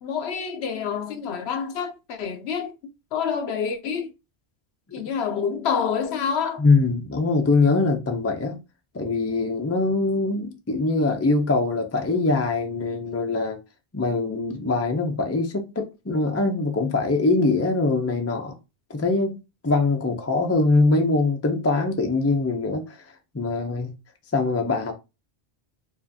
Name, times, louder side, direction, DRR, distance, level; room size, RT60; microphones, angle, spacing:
voice 1, 0.0-2.7 3.1-4.1 4.9-6.6, left 6 dB, 75° left, 0.9 m, -27 dB
voice 2, 6.6-8.6 8.9-13.6 13.9-18.5 18.9-23.0 23.3-23.9 24.3-24.9, left 3 dB, 20° left, 0.4 m, -23 dB
4.7 x 2.5 x 2.7 m
omnidirectional pair, 1.1 m